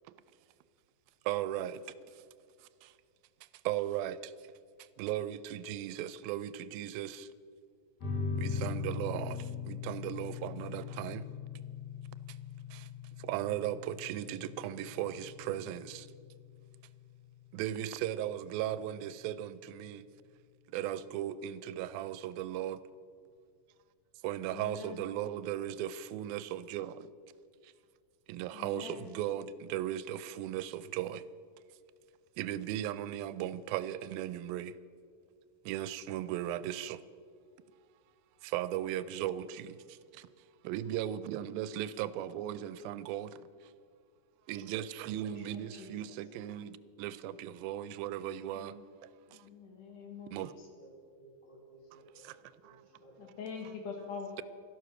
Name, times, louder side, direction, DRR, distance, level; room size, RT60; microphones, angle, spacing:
voice 1, 1.3-1.7 3.7-4.1 5.0-5.4 5.7-7.1 8.4-9.3 9.7-11.2 13.3-15.8 17.6-19.5 19.8-19.9 20.7-22.8 24.2-26.9 28.3-28.9 29.2-29.5 29.7-31.2 32.4-34.7 35.7-37.0 38.5-39.4 40.7-43.3 44.5-46.7 47.0-48.7 50.3-50.5, right 12 dB, 90° right, 2.4 m, -36 dB
sound 1, 8.0-19.0, left 5 dB, 80° left, 5.6 m, -41 dB
voice 2, 24.5-25.1 28.5-29.0 45.2-45.9 49.3-50.3 53.2-54.4, left 5 dB, 65° left, 3.1 m, -44 dB
voice 3, 45.3-46.1 50.8-50.9 51.2-52.2 52.6-53.5, right 1 dB, 15° left, 2.1 m, -58 dB
13.0 x 12.0 x 6.4 m
omnidirectional pair, 4.1 m